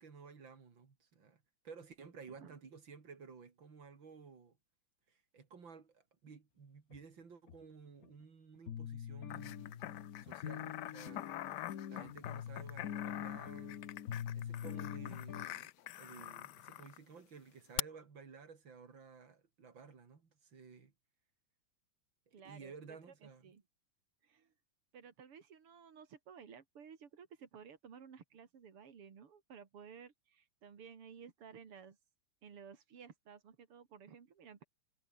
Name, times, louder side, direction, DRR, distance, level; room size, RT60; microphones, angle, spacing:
voice 1, 0.0-4.6 5.1-11.3 11.9-13.9 14.3-15.7 16.0-20.9 22.3-23.5, right 5 dB, 60° right, 3.7 m, -55 dB
sound 1, 6.9-7.0 7.5-7.6 8.0-8.1 8.7-15.5, left 9 dB, 50° left, 1.2 m, -44 dB
sound 2, 9.3-17.0 17.8-17.9, left 15 dB, 70° left, 1.1 m, -45 dB
voice 2, 22.3-23.6 24.2-24.5 24.9-32.0 32.4-34.6, right 7 dB, 85° right, 3.4 m, -55 dB
omnidirectional pair, 2.4 m